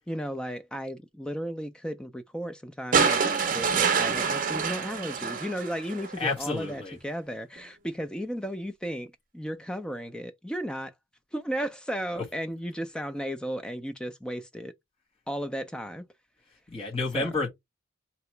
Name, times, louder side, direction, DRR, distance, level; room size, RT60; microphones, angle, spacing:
voice 1, 0.1-3.2 3.5-10.9 11.3-14.7 15.3-16.0 17.1-17.3, equal, 5° left, 0.4 m, -34 dB
sound 1, 2.9-6.2 7.6-7.7, right 5 dB, 45° right, 0.6 m, -26 dB
voice 2, 6.2-7.0 12.1-12.2 16.7-17.5, left 3 dB, 30° left, 1.4 m, -30 dB
2.9 x 2.9 x 4.4 m
head